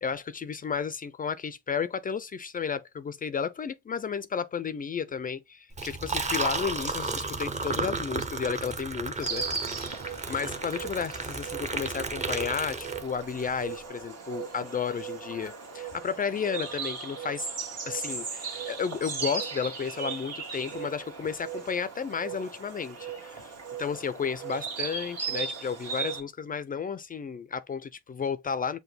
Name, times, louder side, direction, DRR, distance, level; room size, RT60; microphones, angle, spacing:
voice 1, 0.0-9.4 9.7-10.0 10.3-17.5 17.9-23.5 23.8-28.8, left 6 dB, 30° left, 0.3 m, -33 dB
Liquid, 5.7-13.4, right 3 dB, 25° right, 0.7 m, -33 dB
Insect, 9.2-26.2, right 5 dB, 55° right, 1.4 m, -37 dB
5.8 x 2.2 x 3.3 m
cardioid pair, 90°, 30 cm